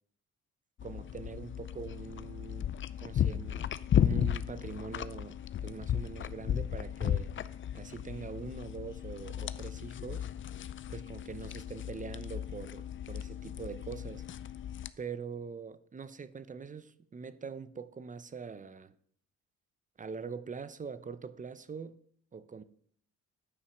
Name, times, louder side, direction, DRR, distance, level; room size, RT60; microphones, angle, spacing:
sound 1, 0.8-14.9, left 10 dB, 40° left, 0.5 m, -35 dB
voice 1, 0.8-2.7 3.0-3.7 4.0-5.4 5.6-7.3 7.7-10.3 10.9-14.2 15.0-18.9 20.0-22.0 22.3-22.6, right 5 dB, 25° right, 0.7 m, -43 dB
9.8 x 5.6 x 6.2 m
cardioid pair, 90°, 30 cm